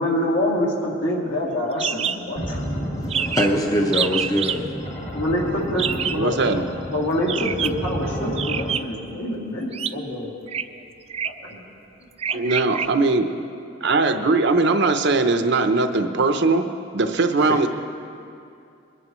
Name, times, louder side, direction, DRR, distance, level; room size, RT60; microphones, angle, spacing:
voice 1, 0.0-2.6 5.1-6.4 6.9-10.3 11.4-11.6 12.3-13.0, left 1 dB, 70° left, -4 dB, 2.5 m, -26 dB
sound 1, 1.8-2.2 2.5-2.6 2.8-2.9 3.1-3.6 3.9-4.6 5.8-6.2 7.2-7.8 8.4-9.1 9.7-9.9 10.5-10.6 11.1-11.5 12.2-12.9, right 8 dB, 30° right, 0.3 m, -26 dB
sound 2, 2.4-8.8, equal, 35° left, 1.8 m, -31 dB
voice 2, 2.9-4.6 17.5-17.7, equal, 20° left, 2 dB, 0.7 m, -23 dB
voice 3, 6.1-6.7 12.3-13.3 13.8-16.7 16.9-17.7, right 3 dB, 60° right, 7 dB, 0.7 m, -20 dB
21.5 x 11.0 x 3.1 m, 2.5 s
head